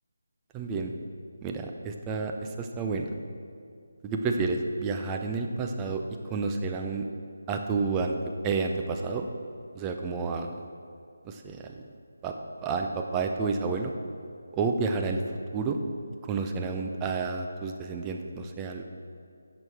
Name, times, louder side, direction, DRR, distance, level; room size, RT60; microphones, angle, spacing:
voice 1, 0.5-0.9 1.4-2.3 2.6-3.1 4.0-6.0 6.3-7.0 7.5-8.1 8.4-9.3 9.7-10.6 11.2-11.7 12.2-12.3 12.6-13.9 14.5-15.2 15.5-15.8 16.3-18.8, right 4 dB, 15° right, 4 dB, 0.5 m, -30 dB
10.5 x 6.1 x 3.4 m, 2.4 s
figure-of-eight pair, 155°, 0 cm